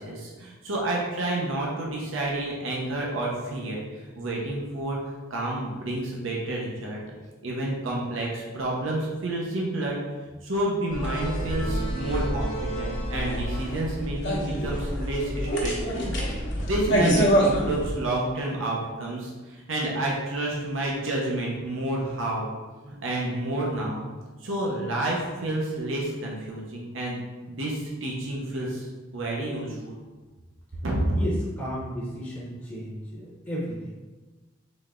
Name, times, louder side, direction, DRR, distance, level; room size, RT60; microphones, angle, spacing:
voice 1, 0.0-5.0 5.3-7.0 7.4-10.0 10.4-16.1 16.6-22.5 22.8-24.0 24.4-27.2 27.5-28.9 29.1-30.0 30.8-31.0, right 1 dB, 75° right, -3 dB, 0.8 m, -30 dB
sound 1, 10.9-18.0, equal, 65° left, 1.0 m, -26 dB
voice 2, 30.7-34.0, equal, 15° left, -6 dB, 0.9 m, -34 dB
4.1 x 3.3 x 3.7 m, 1.3 s
head